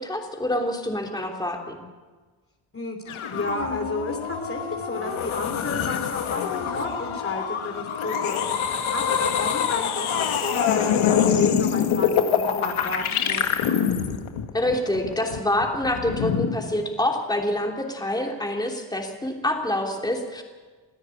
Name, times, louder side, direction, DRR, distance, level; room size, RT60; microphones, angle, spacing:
voice 1, 0.0-1.8 14.5-20.4, left 1 dB, 10° left, 1 dB, 3.3 m, -26 dB
voice 2, 2.7-8.4 8.7-13.5, left 2 dB, 25° left, 3 dB, 3.1 m, -32 dB
sound 1, 3.1-16.9, left 8 dB, 75° left, 1.9 m, -25 dB
22.5 x 13.5 x 8.6 m, 1.4 s
cardioid pair, 75°, 49 cm